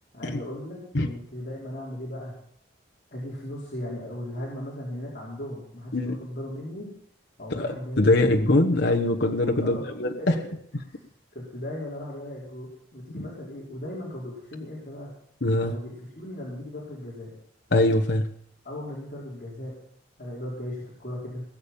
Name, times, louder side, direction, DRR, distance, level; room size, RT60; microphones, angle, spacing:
voice 1, 0.1-2.3 3.1-6.9 7.4-8.4 9.6-9.9 10.2-10.4 10.8-11.0 11.3-15.1 15.6-17.3 18.6-19.7 20.2-21.4, left 1 dB, 50° left, -7 dB, 5.1 m, -37 dB
voice 2, 8.0-10.3 13.1-13.2 15.4-15.7 17.7-18.3, left 2 dB, 65° left, 2 dB, 1.3 m, -22 dB
21.0 x 7.1 x 8.8 m, 0.68 s
head